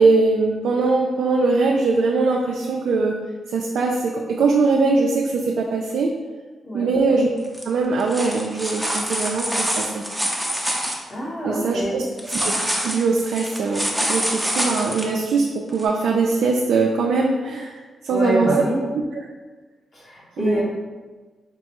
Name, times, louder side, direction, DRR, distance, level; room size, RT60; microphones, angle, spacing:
voice 1, 0.0-3.2 3.5-6.1 6.7-7.3 7.6-10.0 11.4-12.0 12.3-12.5 12.8-15.5 15.7-17.7 18.0-18.6 19.1-19.2 20.4-20.6, right 3 dB, 80° right, 0 dB, 0.3 m, -21 dB
sound 1, 7.4-7.6 8.0-11.0 12.2-15.1 15.8-15.9, equal, ahead, 0.6 m, -25 dB
voice 2, 11.1-12.1 18.1-18.9 19.9-20.6, equal, 40° left, -5 dB, 1.2 m, -26 dB
4.6 x 2.2 x 2.9 m, 1.3 s
cardioid pair, 75°, 0 cm